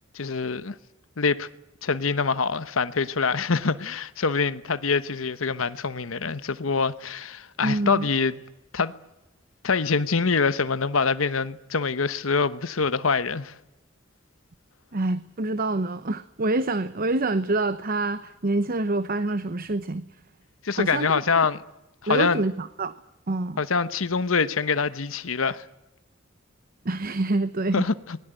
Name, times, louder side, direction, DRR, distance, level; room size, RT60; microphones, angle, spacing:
voice 1, 0.1-0.7 1.2-1.5 1.8-8.4 8.7-8.9 9.6-13.5 20.6-21.6 22.0-22.4 23.6-25.7 27.7-28.2, left 4 dB, 90° left, 1.0 m, -25 dB
voice 2, 7.6-8.1 14.9-20.0 20.7-21.1 22.1-22.9 23.3-23.6 26.8-27.9, right 2 dB, 45° right, 0.9 m, -26 dB
25.5 x 20.5 x 9.0 m
head